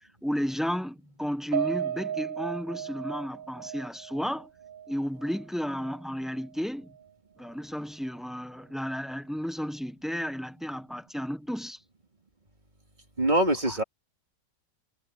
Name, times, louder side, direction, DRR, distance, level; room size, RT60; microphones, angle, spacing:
voice 1, 0.2-4.5 4.9-6.9 7.4-11.8 13.7-13.8, equal, ahead, 0.8 m, -33 dB
Piano, 1.5-6.0 6.4-6.5 6.9-7.0, right 9 dB, 55° right, 1.3 m, -35 dB
voice 2, 13.2-13.8, right 1 dB, 25° right, 3.1 m, -23 dB
omnidirectional pair, 1.8 m